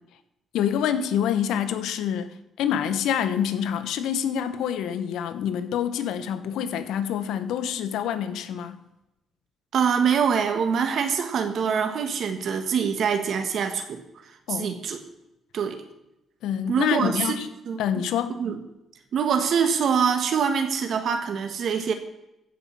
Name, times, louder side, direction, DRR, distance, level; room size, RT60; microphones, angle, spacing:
voice 1, 0.5-8.8 14.5-14.7 16.4-17.5 17.8-18.4, left 9 dB, 85° left, 1.1 m, -26 dB
voice 2, 9.7-14.0 14.5-15.0 15.5-15.8 16.7-17.3 17.6-18.0 18.4-18.6 19.1-21.9, right 6 dB, 65° right, 1.4 m, -24 dB
15.0 x 5.5 x 7.2 m
cardioid pair, 90°, 0 cm